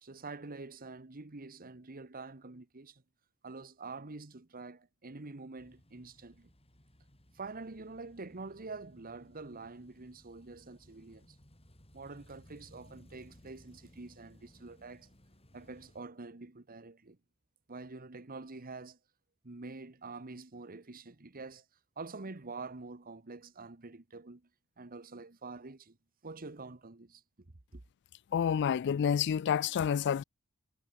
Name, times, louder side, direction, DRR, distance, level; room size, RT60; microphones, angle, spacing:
voice 1, 0.0-3.0 3.4-6.5 7.3-11.4 11.9-15.1 15.5-17.2 17.7-19.0 19.4-21.6 22.0-24.4 24.8-26.0 26.2-27.2 27.7-27.8, right 3 dB, 40° right, 1.2 m, -46 dB
sound 1, 5.6-16.0, equal, 30° left, 4.6 m, -61 dB
voice 2, 28.3-30.2, left 8 dB, 55° left, 0.3 m, -29 dB
head